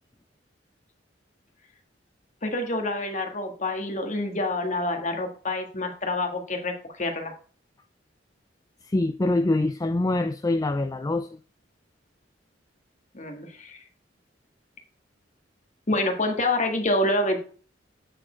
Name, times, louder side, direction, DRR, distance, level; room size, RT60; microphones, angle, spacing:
voice 1, 2.4-7.3 13.1-13.8 15.9-17.4, left 1 dB, 40° left, 1.7 m, -27 dB
voice 2, 8.9-11.3, left 2 dB, 20° left, 0.4 m, -24 dB
9.0 x 4.5 x 4.4 m
head